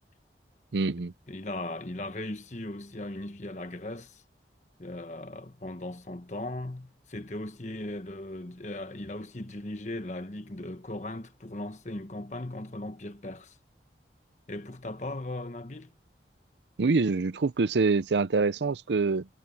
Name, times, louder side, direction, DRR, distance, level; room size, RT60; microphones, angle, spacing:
voice 1, 0.7-1.1 16.8-19.3, right 4 dB, 80° right, 0.6 m, -25 dB
voice 2, 1.3-4.2 4.8-13.6 14.5-15.9, left 1 dB, 40° left, 1.3 m, -38 dB
head